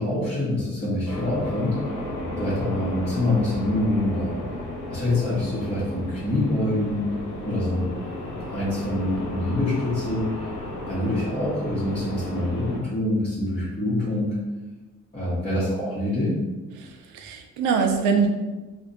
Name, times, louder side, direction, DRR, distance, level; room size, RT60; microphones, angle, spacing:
voice 1, 0.0-1.9 2.4-4.3 4.9-7.1 7.4-7.9 8.5-10.5 10.9-14.4 15.1-16.4, left 1 dB, 20° left, -12 dB, 1.2 m, -25 dB
sound 1, 1.1-12.8, left 1 dB, 85° left, 0.9 m, -34 dB
voice 2, 16.8-18.3, right 5 dB, 90° right, 5 dB, 0.5 m, -23 dB
3.2 x 3.0 x 2.6 m, 1.2 s
cardioid pair, 90°, 30 cm